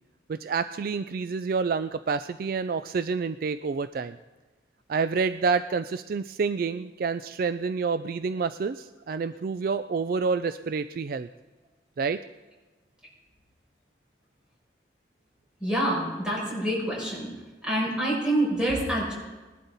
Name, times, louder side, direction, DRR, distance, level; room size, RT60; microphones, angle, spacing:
voice 1, 0.3-4.2 4.9-11.3 12.0-12.2, right 5 dB, 50° right, 12 dB, 0.3 m, -28 dB
voice 2, 15.6-17.3 17.6-19.1, right 1 dB, 5° right, -6 dB, 6.0 m, -26 dB
20.0 x 11.5 x 4.1 m, 1.2 s
head